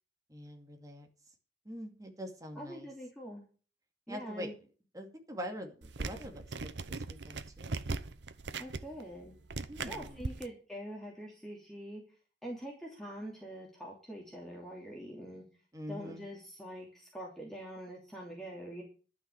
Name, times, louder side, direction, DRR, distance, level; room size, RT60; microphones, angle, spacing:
voice 1, 0.3-1.1 1.6-2.9 4.1-4.5 4.9-7.9 9.7-10.3 15.7-16.3, equal, 20° right, 3 dB, 2.5 m, -44 dB
voice 2, 2.5-3.4 4.1-4.5 8.6-9.3 9.8-12.0 12.4-15.4 15.9-18.8, equal, 5° left, -3 dB, 3.0 m, -44 dB
sound 1, 5.8-10.5, right 3 dB, 80° right, 0.8 m, -40 dB
12.0 x 6.2 x 9.0 m, 0.38 s
head